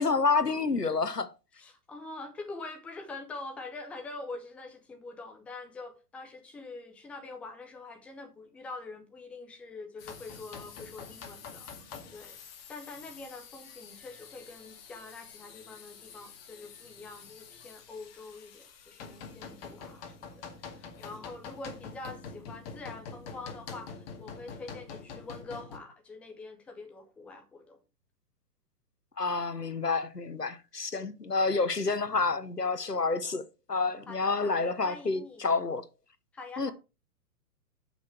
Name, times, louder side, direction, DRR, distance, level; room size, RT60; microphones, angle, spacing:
voice 1, 0.0-1.3 29.2-35.8 36.6-36.7, left 4 dB, 90° left, 1.1 m, -29 dB
voice 2, 1.5-12.4 12.7-27.8 34.1-35.5 36.3-36.7, left 3 dB, 5° left, 0.6 m, -45 dB
sound 1, 10.0-25.8, left 5 dB, 40° left, 2.1 m, -46 dB
11.5 x 6.0 x 4.5 m
figure-of-eight pair, 115°, 47 cm